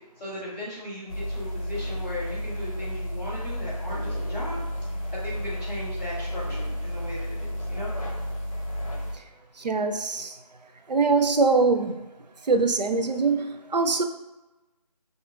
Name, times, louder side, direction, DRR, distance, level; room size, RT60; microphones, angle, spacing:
voice 1, 0.2-4.6 5.1-7.9, left 1 dB, 5° left, -15 dB, 0.8 m, -37 dB
sound 1, 1.1-9.2, equal, 55° left, 0.9 m, -32 dB
voice 2, 9.6-10.3 10.9-11.9 12.5-14.0, right 4 dB, 85° right, 5 dB, 0.5 m, -23 dB
4.2 x 2.8 x 2.4 m, 1.1 s
figure-of-eight pair, 165°, 21 cm